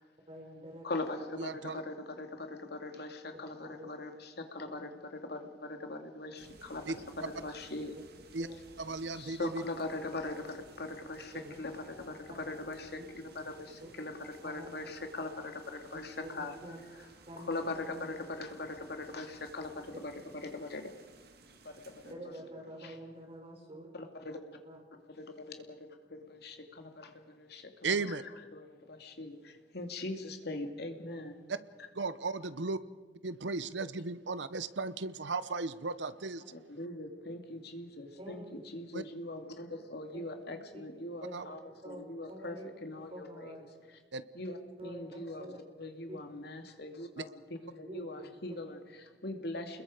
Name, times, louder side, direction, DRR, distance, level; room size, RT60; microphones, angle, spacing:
voice 1, 0.3-0.9 3.6-3.9 4.7-4.8 8.4-8.5 11.3-11.5 13.8-13.9 14.4-14.7 15.9-16.0 16.3-16.8 17.3-18.0 22.0-23.9 24.6-24.8 31.1-31.3 38.1-38.5 40.7-40.8 41.2-41.3 41.8-42.7 42.9-43.7 44.5-45.6 46.1-46.2 47.8-48.2 49.5-49.6, equal, 35° right, 1 dB, 4.1 m, -47 dB
voice 2, 0.8-8.0 8.5-8.6 9.1-20.9 21.6-22.4 22.8-23.0 23.9-24.6 25.0-31.4 31.8-31.9 36.5-43.6 43.9-44.0 44.3-49.8, left 2 dB, 65° left, 5 dB, 2.4 m, -41 dB
voice 3, 1.4-1.8 6.9-7.0 8.3-8.5 8.8-9.6 27.8-28.2 31.5-31.6 32.0-32.8 33.2-36.4 38.9-39.0 41.3-41.5 44.1-44.2 47.2-47.3, right 3 dB, 85° right, 14 dB, 0.9 m, -35 dB
sound 1, 6.4-22.1, right 3 dB, 60° right, 2.0 m, -58 dB
29.5 x 21.5 x 5.0 m, 1.4 s
head